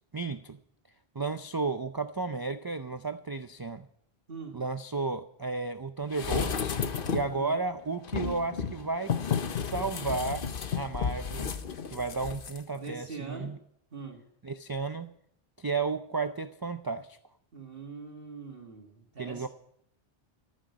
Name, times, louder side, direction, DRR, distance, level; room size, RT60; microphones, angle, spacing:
voice 1, 0.1-0.6 1.1-3.9 4.5-6.8 7.1-9.2 9.5-10.5 10.7-11.5 11.9-13.6 14.4-15.1 15.6-17.2 19.2-19.5, right 4 dB, 30° right, 9 dB, 0.4 m, -33 dB
voice 2, 4.3-4.6 7.3-7.6 12.7-13.5 13.9-14.2 17.5-19.5, right 4 dB, 65° right, 2 dB, 2.1 m, -42 dB
sound 1, 6.1-7.4 8.0-12.6 12.9-13.0, left 7 dB, 60° left, 1.0 m, -32 dB
14.0 x 6.4 x 9.2 m, 0.68 s
omnidirectional pair, 1.1 m